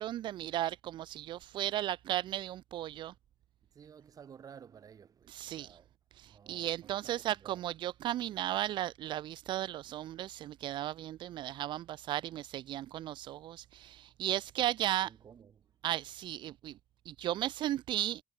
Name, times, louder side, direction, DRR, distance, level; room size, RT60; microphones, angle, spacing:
voice 1, 0.0-3.1 5.3-5.8 6.2-15.1 15.8-16.7 17.1-18.2, right 13 dB, 80° right, 0.5 m, -35 dB
voice 2, 3.6-5.9 6.2-7.6 15.0-15.8, right 7 dB, 50° right, 7.9 m, -55 dB
cardioid pair, 125°, 8 cm